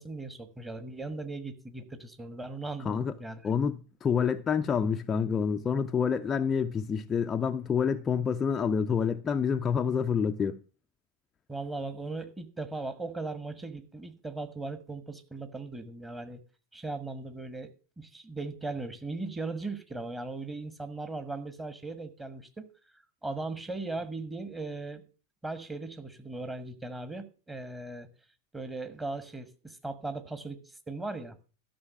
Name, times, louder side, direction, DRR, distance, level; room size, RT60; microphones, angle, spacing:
voice 1, 0.0-3.4 11.5-16.4 16.7-17.7 18.0-22.7 23.2-25.0 25.4-28.1 28.5-31.3, right 3 dB, 10° right, 1.4 m, -38 dB
voice 2, 3.4-10.6, left 6 dB, 20° left, 0.5 m, -28 dB
13.0 x 6.1 x 7.1 m
figure-of-eight pair, 90°, 0 cm